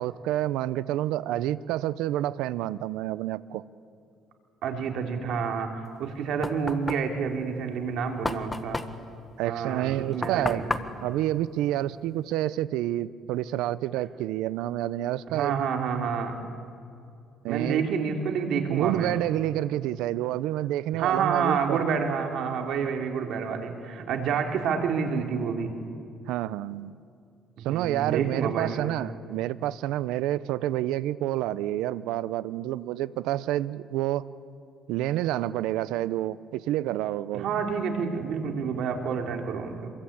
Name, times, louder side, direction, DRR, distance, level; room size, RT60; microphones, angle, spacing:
voice 1, 0.0-3.6 9.4-10.6 11.0-15.5 17.4-17.9 18.7-21.8 26.3-26.9 27.6-34.2 34.9-37.5, right 14 dB, 85° right, 17 dB, 0.7 m, -28 dB
voice 2, 4.6-8.8 9.4-10.6 15.3-16.4 17.5-19.1 20.9-25.7 27.6-28.9 37.3-39.9, right 6 dB, 70° right, 4 dB, 3.1 m, -28 dB
Knock, 5.9-12.3, left 2 dB, 15° left, 1.4 m, -35 dB
26.5 x 22.5 x 8.7 m, 2.5 s
cardioid pair, 110°, 0 cm